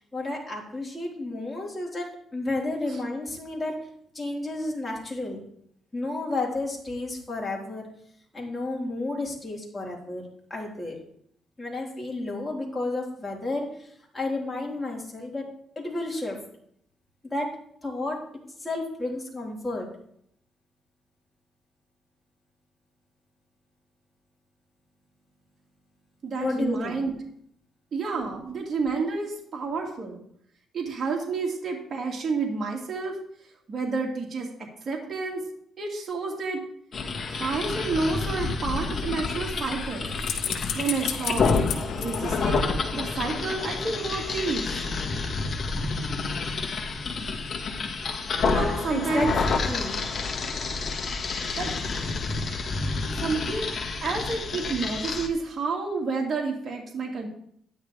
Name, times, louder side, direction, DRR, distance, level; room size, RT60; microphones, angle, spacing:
voice 1, 0.1-3.7 4.1-5.4 5.9-7.9 8.3-10.2 10.5-10.9 11.6-13.9 14.1-15.5 15.8-16.4 17.3-17.5 17.8-18.2 18.6-19.9 26.4-27.0 48.9-49.3 49.7-50.0, left 2 dB, 15° left, -3 dB, 4.3 m, -31 dB
voice 2, 26.2-27.1 27.9-30.2 30.7-33.2 33.7-34.5 34.9-35.4 35.8-36.6 37.3-40.1 40.5-41.5 42.0-44.7 48.4-49.3 51.5-51.7 53.2-53.7 54.0-57.3, right 4 dB, 45° right, 0 dB, 2.3 m, -30 dB
sound 1, 36.9-55.3, left 4 dB, 45° left, 1.7 m, -29 dB
sound 2, 37.9-43.2 43.5-43.6, left 8 dB, 80° left, 1.3 m, -36 dB
12.5 x 10.5 x 3.4 m, 0.69 s
cardioid pair, 90°, 0 cm